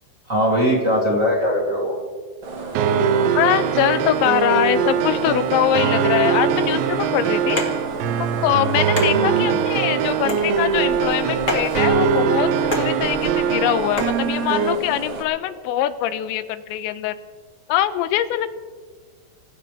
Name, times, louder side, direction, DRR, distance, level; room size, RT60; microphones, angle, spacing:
voice 1, 0.3-2.0 9.1-9.6, equal, 25° right, -4 dB, 2.3 m, -20 dB
sound 1, 2.4-15.2, right 2 dB, 70° right, 1.2 m, -32 dB
sound 2, 2.8-14.8, right 7 dB, 85° right, 3.0 m, -22 dB
voice 2, 3.4-7.6 8.4-17.2 17.7-18.6, left 12 dB, 90° left, 12 dB, 3.1 m, -23 dB
sound 3, 7.6-14.2, left 1 dB, 50° left, 0.9 m, -31 dB
26.5 x 15.5 x 3.4 m, 1.5 s
omnidirectional pair, 5.2 m